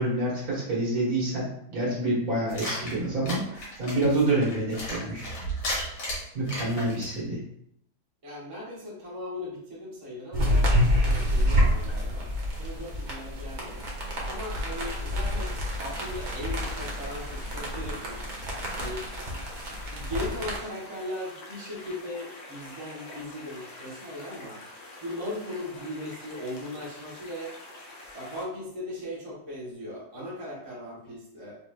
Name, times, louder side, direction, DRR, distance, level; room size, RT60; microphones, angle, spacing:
voice 1, 0.0-5.3 5.8-6.0 6.3-7.4, right 2 dB, 65° right, -5 dB, 1.7 m, -27 dB
sound 1, 2.5-7.2, equal, 85° left, 1.9 m, -35 dB
voice 2, 8.2-12.3 12.6-13.8 14.2-18.2 18.8-19.1 19.9-24.6 25.0-27.5 28.1-31.6, left 1 dB, 20° right, -7 dB, 1.1 m, -38 dB
sound 2, 10.3-20.6, equal, 45° right, 0.6 m, -28 dB
sound 3, 15.5-28.4, left 2 dB, 60° left, 0.9 m, -46 dB
4.6 x 3.2 x 2.2 m, 0.73 s
omnidirectional pair, 1.8 m